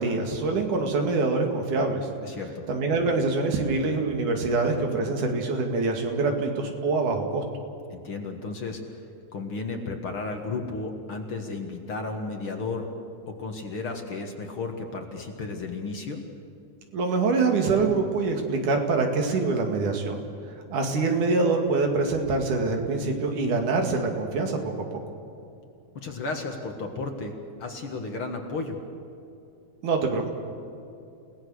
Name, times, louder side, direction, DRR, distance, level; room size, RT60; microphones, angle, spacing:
voice 1, 0.0-2.1 2.7-7.4 16.9-20.2 20.7-24.7 29.8-30.3, right 3 dB, 75° right, 3 dB, 3.8 m, -25 dB
voice 2, 2.2-2.7 7.9-8.8 9.3-12.9 13.3-16.2 26.0-27.3 27.6-28.8, left 3 dB, 50° left, 3 dB, 2.2 m, -33 dB
30.0 x 18.0 x 6.4 m, 2.7 s
omnidirectional pair, 3.6 m